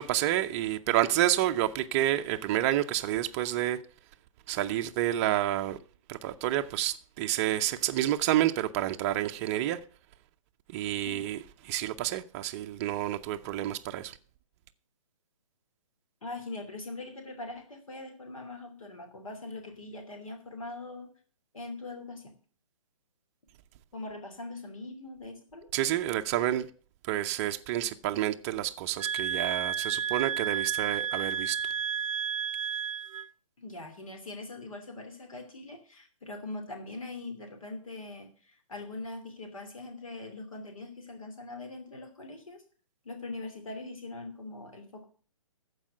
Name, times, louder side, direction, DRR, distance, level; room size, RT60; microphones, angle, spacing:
voice 1, 0.0-3.8 4.5-5.8 6.1-9.8 10.7-11.4 11.6-14.1 25.7-26.7 27.1-31.6, right 13 dB, 25° right, 0.5 m, -29 dB
voice 2, 16.2-21.1 21.5-22.3 23.9-25.7 33.6-42.6 43.0-45.1, left 2 dB, 70° left, 2.8 m, -42 dB
sound 1, 29.0-33.3, right 8 dB, 70° right, 0.4 m, -32 dB
14.5 x 4.8 x 7.6 m
figure-of-eight pair, 130°, 18 cm